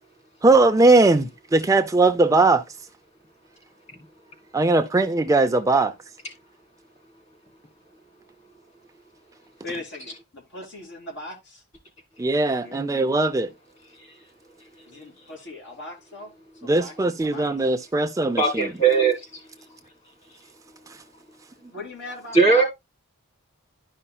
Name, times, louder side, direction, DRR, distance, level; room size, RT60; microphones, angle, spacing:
voice 1, 0.4-2.6 4.5-5.9 12.2-13.5 16.7-18.6 20.9-21.0, right 2 dB, 15° right, 0.4 m, -19 dB
voice 2, 9.6-11.6 12.4-12.8 14.9-17.5 21.7-22.6, left 2 dB, 55° left, 2.8 m, -39 dB
voice 3, 18.4-19.2 22.3-22.6, right 4 dB, 30° left, 3.4 m, -18 dB
12.0 x 5.5 x 2.2 m
head